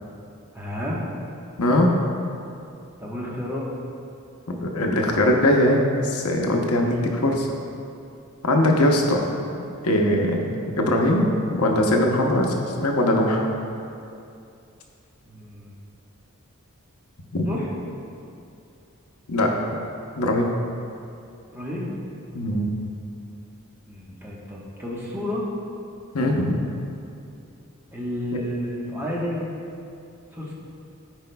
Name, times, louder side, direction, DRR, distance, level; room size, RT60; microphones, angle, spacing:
voice 1, 0.5-1.0 3.0-3.7 15.2-15.7 17.4-17.7 21.5-21.9 23.8-25.5 27.9-29.5 30.3-30.5, left 1 dB, 10° right, -6 dB, 1.1 m, -31 dB
voice 2, 1.6-1.9 4.5-7.5 8.4-9.2 9.8-10.4 10.8-13.4 17.3-17.5 19.3-19.5 20.2-20.5 22.3-22.7 26.1-26.6, left 1 dB, 85° left, 1 dB, 0.8 m, -21 dB
13.0 x 4.9 x 2.3 m, 2.5 s
head